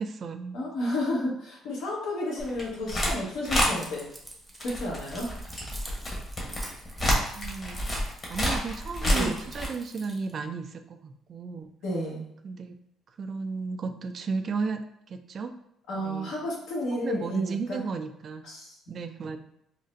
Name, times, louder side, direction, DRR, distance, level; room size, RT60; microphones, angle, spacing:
voice 1, 0.0-0.6 7.3-7.8 8.3-11.7 12.4-12.8 13.2-14.8 15.1-15.5 16.0-16.4 17.0-18.5 18.9-19.4, right 4 dB, 45° right, 7 dB, 0.3 m, -34 dB
voice 2, 0.5-4.1 4.6-5.3 9.0-9.4 11.8-12.3 15.9-17.8 18.4-18.8, left 1 dB, 80° left, -4 dB, 1.2 m, -32 dB
sound 1, 2.4-3.1 3.4-3.7 4.5-9.7, equal, 30° left, 1.0 m, -28 dB
Keys jangling, 3.5-10.3, right 1 dB, 5° right, 0.7 m, -46 dB
3.8 x 2.1 x 2.5 m, 0.74 s
cardioid pair, 110°, 0 cm